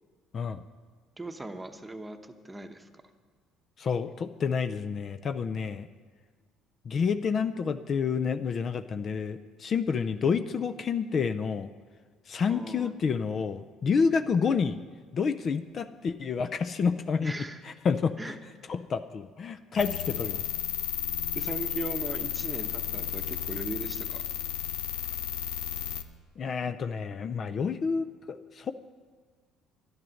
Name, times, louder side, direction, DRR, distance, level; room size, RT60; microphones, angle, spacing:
voice 1, 1.2-2.9 12.4-12.9 17.2-17.6 18.2-18.4 21.3-24.3, right 2 dB, 15° right, 7 dB, 0.9 m, -39 dB
voice 2, 3.8-5.9 6.9-11.7 12.3-14.8 15.1-17.3 17.8-18.2 18.7-20.4 26.4-28.7, left 5 dB, 45° left, 9 dB, 0.5 m, -29 dB
sound 1, 19.8-26.0, left 9 dB, 85° left, 0.7 m, -33 dB
11.0 x 10.5 x 6.4 m, 1.5 s
supercardioid pair, 95°, 0 cm